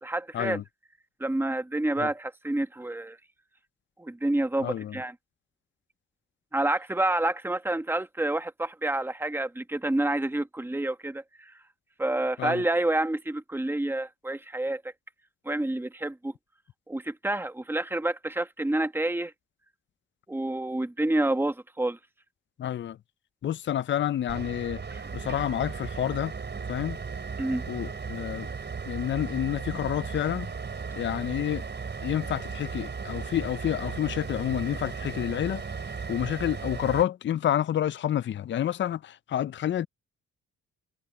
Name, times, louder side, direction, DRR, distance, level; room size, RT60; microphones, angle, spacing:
voice 1, 0.0-0.6 1.2-3.2 4.0-5.1 6.5-11.5 12.0-14.8 15.4-16.3 16.9-19.3 20.3-22.0 24.9-25.0 27.4-27.6, right 1 dB, 5° right, 1.4 m, -28 dB
voice 2, 4.6-5.0 12.4-12.6 22.6-23.0 23.4-24.8 25.1-26.3 26.7-27.0 27.7-28.5 28.9-30.5 31.0-31.6 32.0-35.6 36.1-39.9, left 11 dB, 40° left, 0.5 m, -29 dB
sound 1, 24.3-37.0, right 5 dB, 35° right, 3.9 m, -36 dB
cardioid pair, 90°, 30 cm